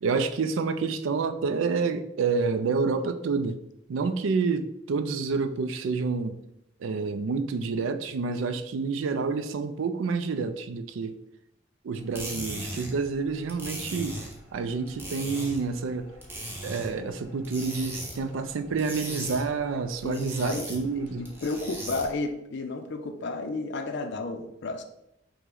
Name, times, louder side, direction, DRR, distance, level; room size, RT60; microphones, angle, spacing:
voice 1, 0.0-3.6 3.9-6.4 6.8-11.2 11.8-14.2 14.5-16.1 16.6-21.3, right 4 dB, 75° right, 0.4 m, -28 dB
sound 1, 11.9-22.3, right 1 dB, 10° right, 0.7 m, -39 dB
voice 2, 20.0-20.7 21.2-24.8, left 3 dB, 60° left, 0.5 m, -32 dB
5.6 x 2.1 x 3.7 m
head